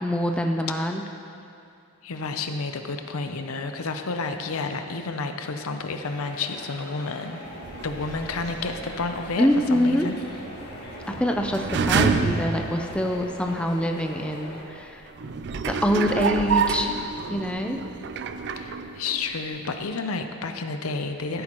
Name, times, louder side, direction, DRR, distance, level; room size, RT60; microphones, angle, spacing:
voice 1, 0.0-1.0 9.4-10.1 11.1-15.0 15.7-17.8, equal, 5° left, 3 dB, 0.5 m, -25 dB
voice 2, 2.0-7.4 7.8-10.2 18.6-21.4, left 3 dB, 85° left, 6 dB, 0.7 m, -30 dB
sound 1, 6.0-14.6, left 1 dB, 50° left, 1.6 m, -41 dB
sound 2, 7.5-13.6 14.2-14.3 15.1-19.4 19.6-19.7, right 5 dB, 55° right, 0.4 m, -29 dB
15.0 x 8.9 x 3.0 m, 2.6 s
head